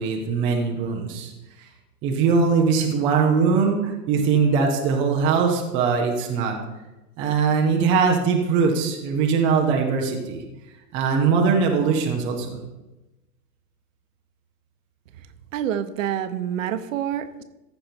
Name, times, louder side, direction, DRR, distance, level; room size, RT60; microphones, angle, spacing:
voice 1, 0.0-1.3 2.0-6.6 7.2-10.4 10.9-12.6, right 5 dB, 10° right, 1 dB, 0.4 m, -21 dB
voice 2, 15.5-17.4, right 10 dB, 55° right, 12 dB, 0.9 m, -27 dB
14.0 x 5.3 x 4.4 m, 1.0 s
hypercardioid pair, 140°, 47 cm